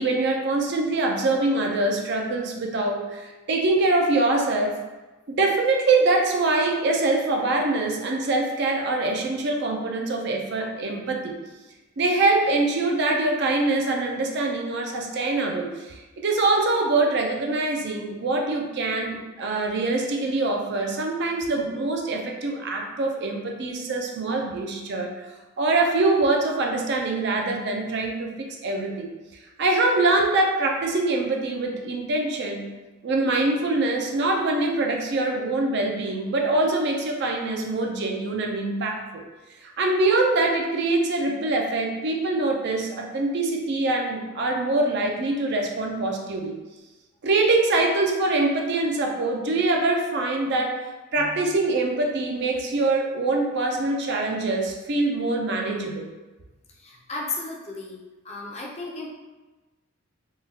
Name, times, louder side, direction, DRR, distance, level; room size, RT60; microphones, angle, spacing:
voice 1, 0.0-4.8 5.3-11.4 12.0-15.9 16.2-25.2 25.6-29.1 29.6-32.8 33.0-39.2 39.6-46.5 47.2-50.8 51.1-56.1, right 2 dB, 55° right, 1 dB, 0.5 m, -24 dB
voice 2, 56.8-58.0 58.2-59.1, left 3 dB, 30° left, -2 dB, 0.5 m, -34 dB
3.6 x 2.3 x 2.7 m, 1.2 s
head